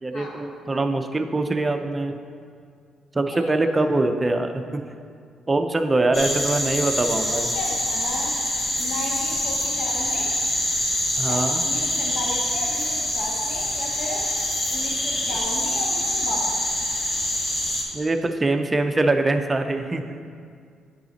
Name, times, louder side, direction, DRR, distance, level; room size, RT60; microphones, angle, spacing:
voice 1, 0.0-2.1 3.1-4.9 5.5-7.5 11.2-11.6 17.9-20.0, right 2 dB, 20° right, 6 dB, 0.5 m, -23 dB
sound 1, 6.1-17.8, left 1 dB, 35° left, 1.6 m, -25 dB
voice 2, 7.3-8.3 8.8-10.3 11.2-14.3 14.7-16.6, left 2 dB, 70° left, -2 dB, 1.5 m, -34 dB
9.2 x 5.0 x 4.1 m, 2.2 s
cardioid pair, 90°, 0 cm